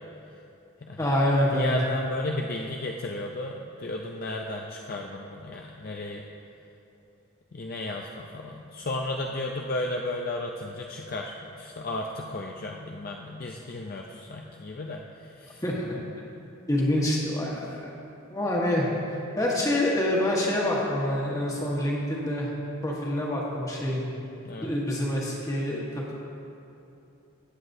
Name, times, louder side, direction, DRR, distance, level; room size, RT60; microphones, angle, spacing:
voice 1, 1.0-1.8 15.6-16.0 16.7-17.9 18.3-22.5 22.8-24.0 24.6-26.1, left 1 dB, 15° left, -4 dB, 1.4 m, -26 dB
voice 2, 1.5-6.2 7.5-15.6 24.4-24.7, left 2 dB, 40° left, 1 dB, 0.4 m, -34 dB
18.0 x 8.0 x 2.7 m, 2.8 s
head